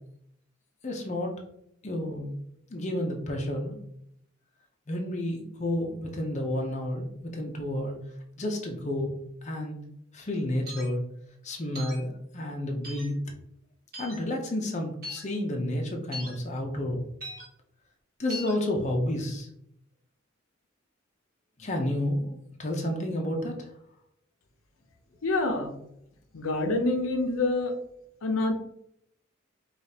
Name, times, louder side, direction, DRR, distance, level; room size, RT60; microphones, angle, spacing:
voice 1, 0.8-1.4 1.8-2.3 2.7-3.8 4.9-8.0 8.4-9.1 9.4-9.8 10.1-11.0 11.4-13.1 14.0-17.0 18.2-19.5 21.6-23.7, left 1 dB, 35° left, 1 dB, 0.6 m, -30 dB
sound 1, 10.7-10.9 11.8-12.0 12.8-13.1 13.9-14.2 15.0-15.2 16.1-16.3 17.2-17.5 18.3-18.5, equal, 50° right, 1.2 m, -39 dB
voice 2, 25.2-25.8 26.3-27.7 28.2-28.5, left 2 dB, 90° left, 4 dB, 0.6 m, -26 dB
4.9 x 2.4 x 2.8 m, 0.73 s
head